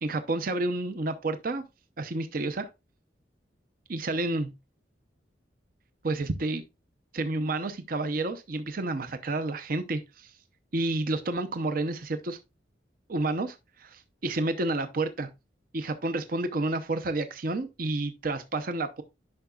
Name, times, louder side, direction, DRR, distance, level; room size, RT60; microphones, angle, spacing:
voice 1, 0.0-1.6 2.0-2.7 3.9-4.5 6.0-6.6 7.1-10.3 10.7-12.4 13.1-15.3 15.7-19.0, right 2 dB, 50° right, 0.7 m, -30 dB
11.0 x 5.6 x 2.3 m
head